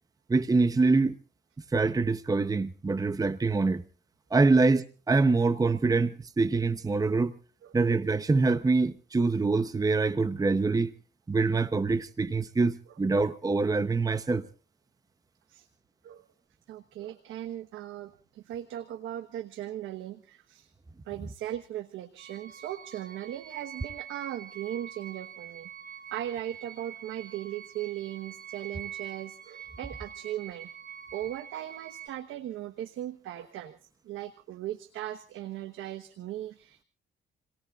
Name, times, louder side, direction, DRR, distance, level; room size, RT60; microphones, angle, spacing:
voice 1, 0.3-1.1 1.7-3.8 4.3-7.3 7.7-10.9 11.3-14.5, right 3 dB, 20° right, 0.8 m, -25 dB
voice 2, 16.7-20.7 21.0-30.7 31.1-33.8 34.0-36.8, right 12 dB, 85° right, 1.2 m, -38 dB
sound 1, 22.2-32.1, right 9 dB, 50° right, 5.5 m, -45 dB
29.5 x 18.5 x 2.5 m
cardioid pair, 90°, 20 cm